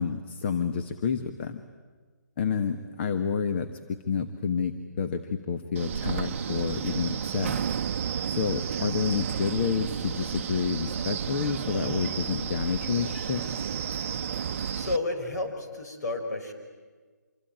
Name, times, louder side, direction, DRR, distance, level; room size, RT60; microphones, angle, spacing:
voice 1, 0.0-1.6 2.4-7.6 8.3-13.7, left 6 dB, 35° left, 9 dB, 1.2 m, -29 dB
Wind, 5.8-15.0, right 8 dB, 45° right, 0.8 m, -32 dB
voice 2, 14.7-16.5, left 2 dB, 60° left, 5 dB, 5.9 m, -31 dB
26.5 x 23.5 x 9.1 m, 1.5 s
hypercardioid pair, 155°, 10 cm